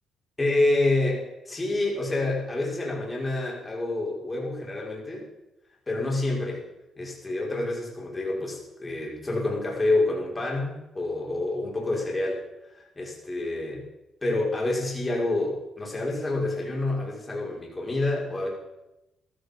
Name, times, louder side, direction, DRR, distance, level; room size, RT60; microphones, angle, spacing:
voice 1, 0.4-5.3 5.9-6.6 7.0-12.4 12.7-13.8 14.2-18.5, left 2 dB, 20° left, -3 dB, 5.6 m, -28 dB
14.5 x 13.0 x 5.4 m, 0.94 s
cardioid pair, 90°, 0 cm